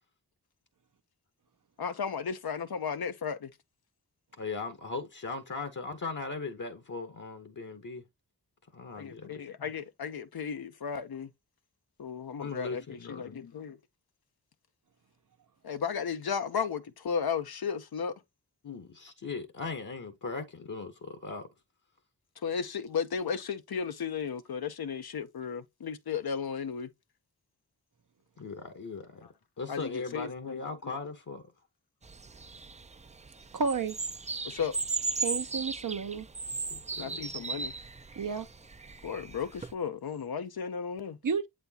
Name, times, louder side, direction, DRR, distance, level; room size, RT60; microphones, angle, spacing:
voice 1, 1.8-3.5 9.0-11.3 12.0-13.8 15.6-18.1 22.4-26.9 29.7-31.0 34.4-34.8 37.0-37.7 39.0-41.1, left 6 dB, 80° left, 0.8 m, -34 dB
voice 2, 4.4-8.0 8.7-9.7 12.4-13.4 18.6-21.5 28.4-29.3 29.6-31.5 36.7-37.6, left 4 dB, 55° left, 1.0 m, -39 dB
sound 1, 32.0-39.7, right 3 dB, 20° right, 0.4 m, -37 dB
voice 3, 33.5-34.0 35.2-36.3 38.2-38.5 41.2-41.5, right 5 dB, 60° right, 0.7 m, -31 dB
8.0 x 4.3 x 2.8 m
wide cardioid pair, 90°, 37 cm